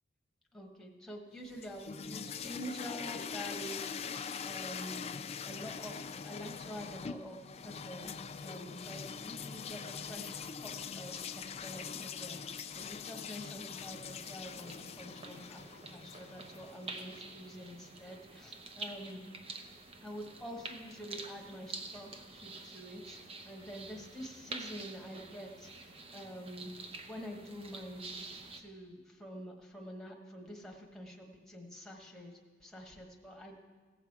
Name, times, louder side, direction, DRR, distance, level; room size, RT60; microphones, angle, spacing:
voice 1, 0.5-5.1 5.4-8.1 8.4-19.2 20.0-26.7 27.0-32.3 32.6-33.6, equal, 5° left, 0 dB, 1.3 m, -47 dB
sound 1, 1.4-17.4, left 6 dB, 30° left, 0.3 m, -43 dB
sound 2, 13.8-28.6, right 3 dB, 30° right, 0.8 m, -48 dB
17.0 x 7.0 x 4.7 m, 1.4 s
head